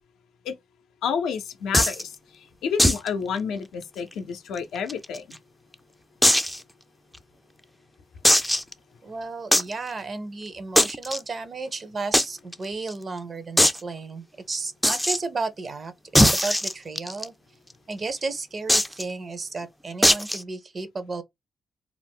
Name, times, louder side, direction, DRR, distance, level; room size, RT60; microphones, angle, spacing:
voice 1, 1.0-5.4, left 6 dB, 85° left, 0.4 m, -30 dB
sound 1, 1.7-2.0 2.8-3.1 3.3-3.4 3.8-3.9 4.6-5.4 6.2-6.6 7.1-7.2 8.2-8.7 9.5-9.7 10.8-11.2 12.1-12.3 12.5-12.6 12.9-13.0 13.6-13.8 14.8-15.2 16.1-17.2 18.7-19.0 20.0-20.4, equal, 5° left, 0.3 m, -19 dB
voice 2, 9.0-17.3 17.9-21.2, right 3 dB, 45° right, 0.6 m, -33 dB
2.4 x 2.0 x 3.4 m
supercardioid pair, 65°, 0 cm